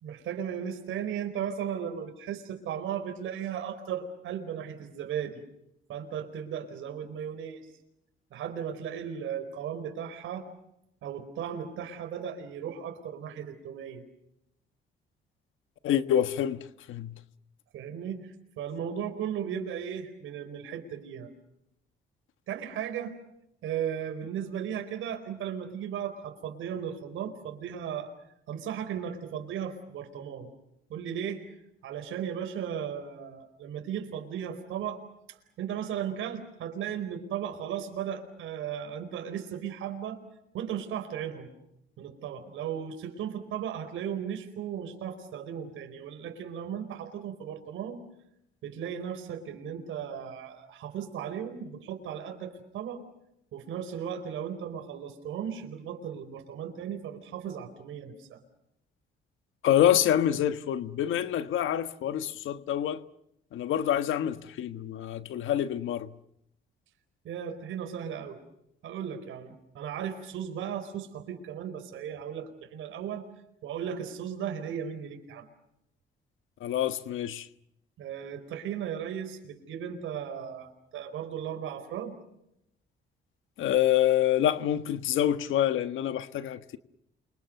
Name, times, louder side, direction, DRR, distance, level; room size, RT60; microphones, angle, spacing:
voice 1, 0.0-5.4 5.9-7.6 8.3-10.5 11.0-14.0 17.7-21.3 22.5-23.1 23.6-28.1 28.5-30.5 30.9-31.4 31.8-35.0 35.3-40.2 40.5-41.5 42.0-48.0 48.6-53.0 53.5-58.4 67.2-68.4 68.8-73.3 73.6-75.5 78.0-82.1, right 8 dB, 80° right, 4.5 m, -36 dB
voice 2, 15.8-17.1 59.6-63.0 63.5-66.1 76.6-77.5 83.6-86.8, left 11 dB, 80° left, 1.4 m, -26 dB
29.5 x 25.0 x 6.7 m
cardioid pair, 90°, 20 cm